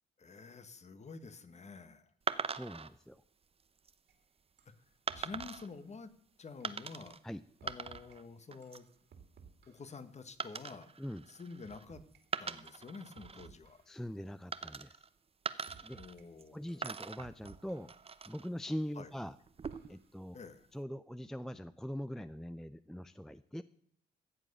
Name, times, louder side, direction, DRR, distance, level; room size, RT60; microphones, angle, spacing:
voice 1, 0.2-2.1 5.1-6.1 6.4-7.2 7.6-8.9 9.7-10.9 11.3-12.0 12.4-13.8 16.0-16.9 18.9-19.1 20.3-20.7, left 4 dB, 35° left, 12 dB, 1.4 m, -49 dB
sound 1, 2.3-2.9 3.6-3.9 5.1-5.7 6.6-7.2 7.5-8.2 8.5-8.9 10.4-11.9 12.2-13.5 14.5-15.1 15.5-16.5 16.8-18.5 19.4-20.1, right 5 dB, 30° right, 0.8 m, -41 dB
voice 2, 2.5-3.2 7.2-7.4 11.0-11.2 13.9-15.0 15.8-16.0 16.5-17.9 18.3-19.4 19.9-20.4 20.7-23.6, equal, ahead, 14 dB, 0.4 m, -42 dB
sound 2, 4.1-4.2 4.6-4.8 5.1-5.8 6.6-6.8 7.6-8.2 8.6-10.0 10.6-10.8 11.6-12.2 12.7-12.9 13.2-14.0 14.7-14.9 15.7-16.2 16.7-18.0 18.7-18.9 19.7-20.1, right 6 dB, 65° right, 2.8 m, -59 dB
14.0 x 7.6 x 6.7 m, 0.66 s
cardioid pair, 90°, 20 cm